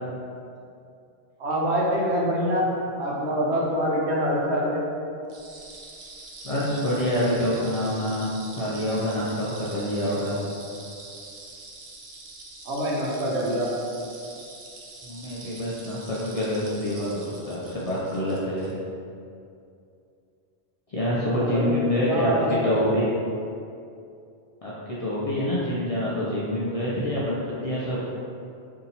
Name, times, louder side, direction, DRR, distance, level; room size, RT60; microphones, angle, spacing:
voice 1, 1.4-2.7 3.0-4.9 12.6-13.7 21.2-22.9, equal, 80° right, -3 dB, 1.0 m, -25 dB
sound 1, 5.3-18.7, right 2 dB, 55° right, 0.6 m, -44 dB
voice 2, 6.4-10.4 15.0-18.7 20.9-23.1 24.6-28.0, left 1 dB, 55° left, -8 dB, 0.4 m, -26 dB
2.7 x 2.7 x 4.0 m, 2.5 s
omnidirectional pair, 1.1 m